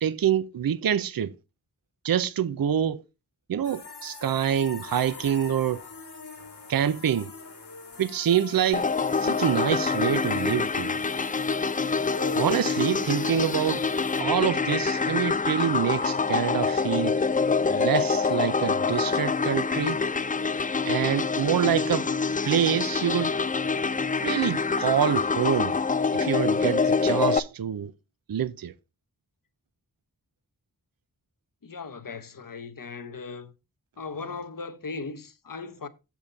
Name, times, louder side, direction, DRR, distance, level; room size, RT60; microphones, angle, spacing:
voice 1, 0.0-1.3 2.0-3.0 3.5-5.8 6.7-7.3 8.0-8.9 9.2-11.0 12.3-13.9 14.2-17.1 17.7-20.0 20.9-22.1 22.4-23.4 24.2-25.8 26.1-27.9 28.3-28.7, right 9 dB, 60° right, 0.5 m, -26 dB
sound 1, 3.6-14.2, left 3 dB, 85° left, 1.7 m, -42 dB
sound 2, 8.7-27.4, left 4 dB, 25° left, 0.3 m, -26 dB
voice 2, 31.6-33.5 34.0-35.9, left 4 dB, 55° left, 0.9 m, -38 dB
7.2 x 7.1 x 3.9 m
wide cardioid pair, 55°, 39 cm